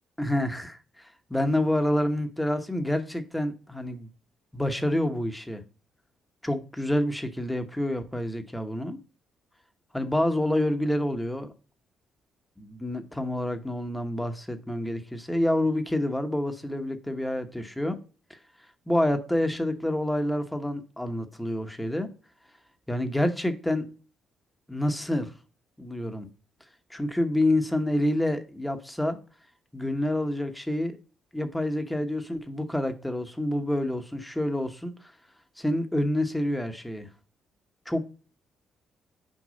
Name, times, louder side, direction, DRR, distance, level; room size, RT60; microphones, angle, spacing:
voice 1, 0.2-4.1 4.5-5.6 6.4-9.0 9.9-11.5 12.6-18.0 18.3-18.4 18.9-22.1 22.9-23.9 24.7-25.3 25.8-26.3 26.9-29.2 29.7-31.0 31.3-35.1 35.6-37.1 37.9-38.1, left 1 dB, 5° left, 1.1 m, -28 dB
6.4 x 4.6 x 3.9 m
cardioid pair, 90°, 0 cm